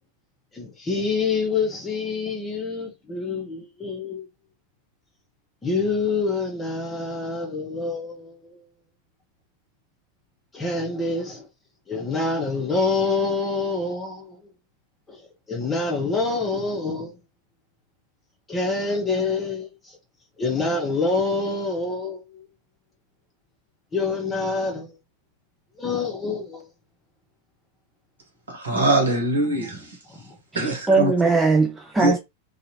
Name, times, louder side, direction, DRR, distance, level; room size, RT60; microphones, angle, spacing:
voice 1, 0.5-4.3 5.6-8.6 10.5-11.5 11.9-14.5 15.1-15.2 15.5-17.2 18.5-20.0 20.4-22.5 23.9-24.9 25.8-26.7 30.1-30.4, left 3 dB, 15° left, 1.0 m, -26 dB
voice 2, 28.5-30.0 30.5-31.1 32.0-32.2, right 1 dB, 70° right, 1.1 m, -22 dB
voice 3, 30.5-32.2, right 3 dB, 10° right, 0.4 m, -20 dB
2.7 x 2.4 x 2.9 m
figure-of-eight pair, 90°, 0 cm